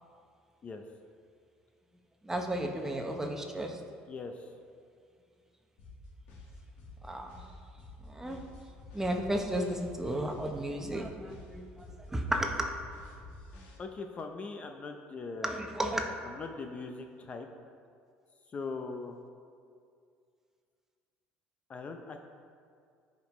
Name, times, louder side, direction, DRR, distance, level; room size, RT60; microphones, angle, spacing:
voice 1, 2.2-3.8 7.1-7.3 8.1-8.4 8.9-12.7 15.4-16.1, right 1 dB, 10° right, 3 dB, 1.0 m, -33 dB
voice 2, 4.1-4.5 13.8-15.6 16.2-17.5 18.5-19.2 21.7-22.2, left 4 dB, 35° left, 5 dB, 0.6 m, -40 dB
sound 1, 5.8-13.8, left 2 dB, 85° left, 1.7 m, -50 dB
14.0 x 5.2 x 3.2 m, 2.3 s
cardioid pair, 105°, 4 cm